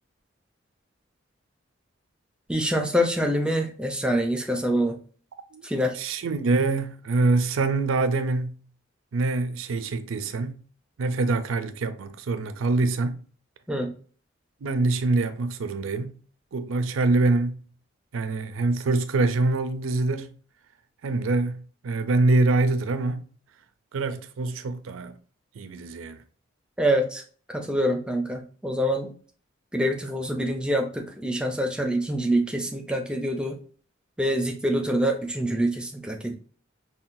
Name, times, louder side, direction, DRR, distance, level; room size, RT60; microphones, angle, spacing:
voice 1, 2.5-5.0 5.6-6.0 13.7-13.9 26.8-27.2 27.5-29.1 29.7-33.6 34.2-36.3, equal, 5° right, 0.4 m, -25 dB
voice 2, 6.0-8.6 9.1-10.6 11.0-13.2 14.6-16.2 16.5-17.6 18.1-20.3 21.0-23.3 23.9-25.2 25.6-26.2, right 3 dB, 85° right, 0.4 m, -25 dB
5.6 x 2.2 x 2.6 m
head